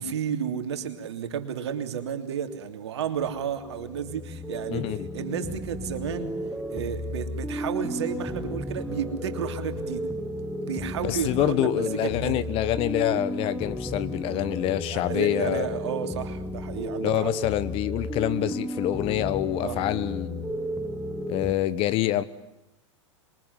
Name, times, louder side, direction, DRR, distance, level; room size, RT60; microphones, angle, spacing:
voice 1, 0.0-6.4 6.7-10.1 10.6-12.5 14.9-17.3 19.6-19.8, right 8 dB, 60° right, 3.1 m, -32 dB
sound 1, 3.2-21.5, equal, ahead, 1.7 m, -33 dB
voice 2, 4.7-5.1 11.0-15.7 17.0-20.5 21.3-22.2, left 14 dB, 35° left, 1.3 m, -26 dB
27.0 x 23.0 x 9.6 m
figure-of-eight pair, 95°, 16 cm